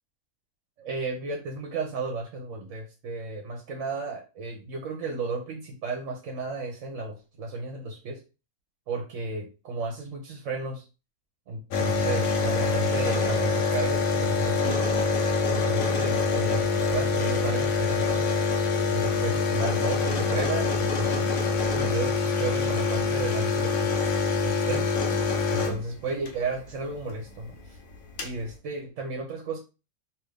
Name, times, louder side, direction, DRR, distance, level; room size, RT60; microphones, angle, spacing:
voice 1, 0.8-8.2 8.9-10.8 11.5-14.8 15.4-18.3 18.9-21.3 21.7-24.0 24.4-25.0 25.5-27.8 28.2-29.6, right 3 dB, 75° right, 1 dB, 1.0 m, -33 dB
sound 1, 11.7-26.3 27.6-27.7 27.9-28.4, left 4 dB, 90° left, 1.1 m, -25 dB
2.8 x 2.5 x 3.2 m, 0.30 s
omnidirectional pair, 1.4 m